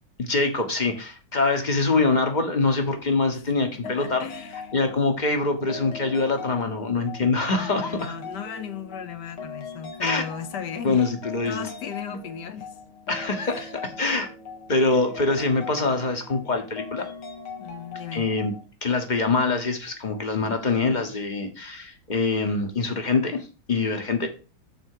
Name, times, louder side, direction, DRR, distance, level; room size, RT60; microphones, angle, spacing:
voice 1, 0.2-4.2 4.7-8.1 10.0-10.2 10.8-11.7 12.1-12.2 13.1-14.3 14.7-17.1 18.1-18.5 18.8-24.3, left 3 dB, 30° left, 1.0 m, -24 dB
sound 1, 3.8-18.6, left 4 dB, 85° left, 2.4 m, -40 dB
voice 2, 3.8-4.7 7.8-11.1 11.5-12.8 13.4-13.6 17.6-18.3, left 8 dB, 65° left, 1.2 m, -36 dB
7.1 x 4.3 x 6.5 m
omnidirectional pair, 2.3 m